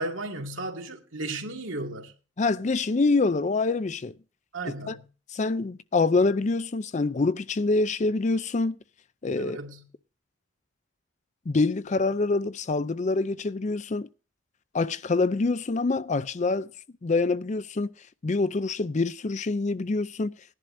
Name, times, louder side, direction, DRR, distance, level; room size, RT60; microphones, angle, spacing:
voice 1, 0.0-2.1 4.5-5.0 9.4-9.8, right 2 dB, 80° right, 2.3 m, -34 dB
voice 2, 2.4-4.1 4.7-5.0 5.3-8.8 9.2-9.6 11.5-14.1 14.7-16.7 17.0-17.9 18.2-20.3, left 3 dB, 35° left, 0.5 m, -25 dB
19.0 x 11.0 x 2.7 m
head